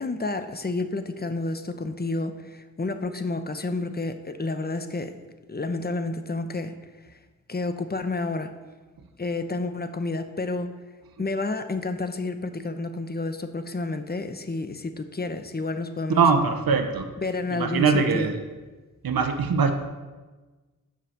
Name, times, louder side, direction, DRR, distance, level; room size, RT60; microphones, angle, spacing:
voice 1, 0.0-5.1 5.5-6.7 7.5-8.5 9.2-10.7 11.2-16.2 17.2-18.3, left 3 dB, 30° left, 9 dB, 0.9 m, -30 dB
voice 2, 16.2-17.1 17.5-18.4 19.0-19.7, right 5 dB, 85° right, 6 dB, 1.0 m, -22 dB
7.5 x 5.7 x 6.5 m, 1.3 s
cardioid pair, 45°, 34 cm